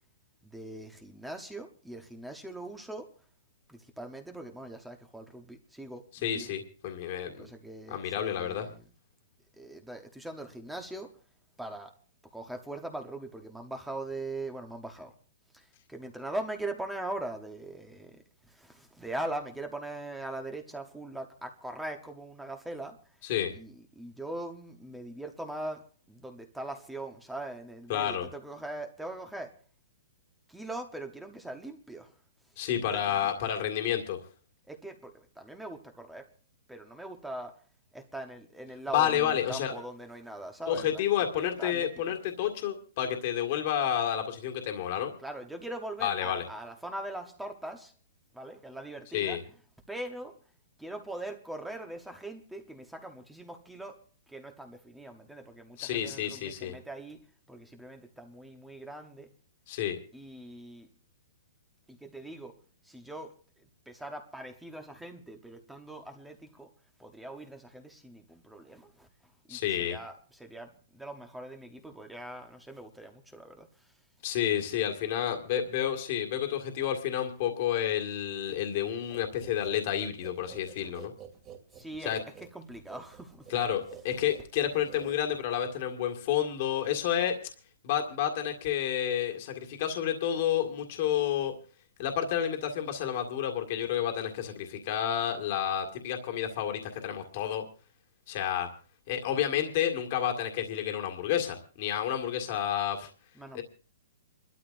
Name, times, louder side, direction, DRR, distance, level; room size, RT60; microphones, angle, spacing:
voice 1, 0.4-3.1 3.7-6.5 7.3-8.9 9.6-11.2 11.6-11.9 12.3-15.1 15.5-23.2 23.5-29.6 30.5-32.2 32.8-33.2 34.7-36.3 36.7-37.6 37.9-41.1 41.3-42.1 45.2-47.9 48.3-49.4 49.9-50.4 50.8-59.3 60.1-60.9 61.9-66.7 67.0-74.0 81.7-83.5 103.3-103.6, right 1 dB, 5° right, 1.0 m, -41 dB
voice 2, 6.2-7.3 7.9-8.7 23.3-23.5 27.9-28.3 32.6-34.2 38.9-39.7 40.7-45.1 46.0-46.4 49.1-49.4 55.8-56.7 59.7-60.0 69.5-70.0 74.2-81.1 82.1-82.2 83.5-87.4 87.8-91.5 92.0-97.6 98.3-98.7 99.1-103.1 103.5-103.6, left 10 dB, 45° left, 1.9 m, -30 dB
sound 1, 79.1-85.6, right 7 dB, 25° right, 2.4 m, -50 dB
27.0 x 12.5 x 2.6 m
hypercardioid pair, 155°, 0 cm